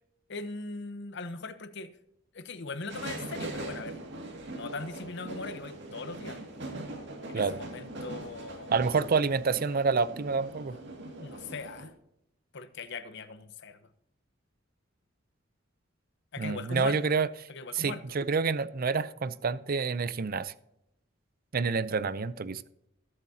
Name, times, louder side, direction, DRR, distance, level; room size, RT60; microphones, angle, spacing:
voice 1, 0.3-1.9 2.3-4.0 4.3-6.4 7.3-8.8 11.0-11.9 12.5-13.8 16.3-17.2 17.5-18.0, left 3 dB, 65° left, 12 dB, 0.9 m, -40 dB
sound 1, 2.9-11.9, right 2 dB, 65° right, 2.3 m, -41 dB
voice 2, 8.7-10.8 16.4-17.3 17.7-20.5 21.5-22.6, right 5 dB, 50° right, 16 dB, 0.6 m, -28 dB
20.5 x 8.1 x 2.8 m, 0.84 s
head